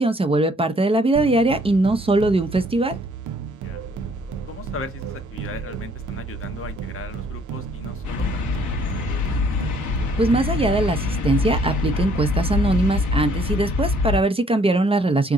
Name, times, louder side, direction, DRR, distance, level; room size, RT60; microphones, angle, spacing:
voice 1, 0.0-3.0 10.2-15.3, right 2 dB, 20° right, 0.6 m, -20 dB
sound 1, 1.1-12.6, right 11 dB, 75° right, 0.6 m, -35 dB
sound 2, 3.6-13.5, right 4 dB, 45° right, 0.9 m, -38 dB
voice 2, 4.5-8.6 8.8-9.3, left 5 dB, 45° left, 0.8 m, -38 dB
sound 3, 8.0-14.2, left 4 dB, 75° left, 1.2 m, -24 dB
3.7 x 2.9 x 3.7 m
cardioid pair, 90°, 30 cm